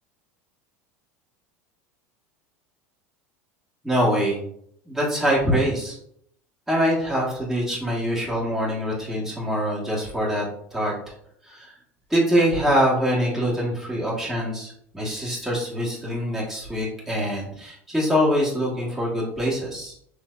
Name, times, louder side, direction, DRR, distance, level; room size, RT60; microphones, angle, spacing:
voice 1, 3.8-4.4 4.9-6.0 6.7-10.5 10.7-10.9 11.4-11.7 12.1-19.9, equal, ahead, -7 dB, 1.8 m, -24 dB
6.2 x 3.3 x 2.6 m, 0.70 s
hypercardioid pair, 80°, 8 cm